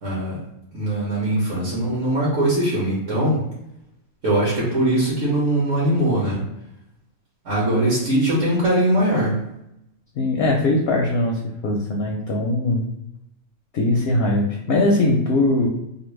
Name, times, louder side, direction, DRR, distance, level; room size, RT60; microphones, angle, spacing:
voice 1, 0.0-0.4 0.7-3.4 4.2-6.4 7.4-9.4, right 1 dB, 60° right, -6 dB, 1.4 m, -21 dB
voice 2, 10.2-12.8 13.7-15.7, left 2 dB, 65° left, 0 dB, 0.7 m, -21 dB
2.9 x 2.6 x 3.1 m, 0.84 s
omnidirectional pair, 1.4 m